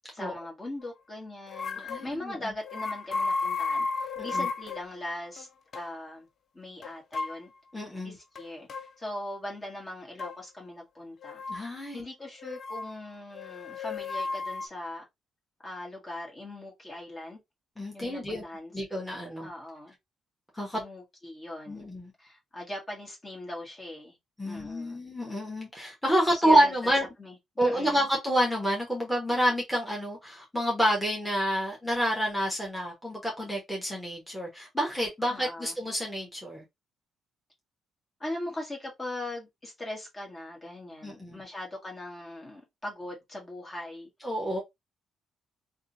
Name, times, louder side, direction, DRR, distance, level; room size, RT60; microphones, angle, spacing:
voice 1, 0.1-5.5 5.7-6.3 6.5-7.5 8.0-8.7 9.0-11.4 11.9-15.1 15.6-17.4 17.9-18.7 19.4-20.0 20.7-21.9 22.2-24.2 24.4-25.0 26.3-26.9 27.2-28.1 35.3-35.8 38.2-44.1, left 1 dB, 25° left, 1.8 m, -40 dB
sound 1, 1.5-2.1 2.6-4.9 5.4-5.5 5.7-5.9 6.8-7.4 8.4-8.9 10.2-10.4 11.2-11.6 12.4-12.9 13.3-14.7, left 4 dB, 55° left, 0.4 m, -33 dB
voice 2, 1.8-2.4 4.2-4.5 7.7-8.2 11.5-12.0 17.8-18.4 18.7-19.5 20.5-20.8 21.7-22.1 24.4-27.1 27.6-36.6 41.0-41.4 44.2-44.6, equal, 5° left, 1.5 m, -28 dB
3.5 x 2.5 x 2.7 m
cardioid pair, 90°, 0 cm